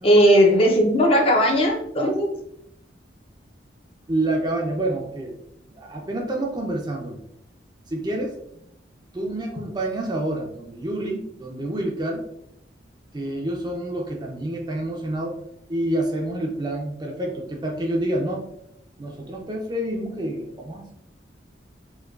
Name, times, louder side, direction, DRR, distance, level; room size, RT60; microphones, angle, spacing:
voice 1, 0.0-2.3, equal, 30° left, 1 dB, 0.5 m, -17 dB
voice 2, 4.1-5.4 5.8-7.2 7.9-8.4 9.1-12.3 13.1-15.4 15.7-18.5 19.0-20.9, right 1 dB, 25° right, 1 dB, 0.4 m, -28 dB
4.4 x 2.3 x 2.3 m, 0.75 s
head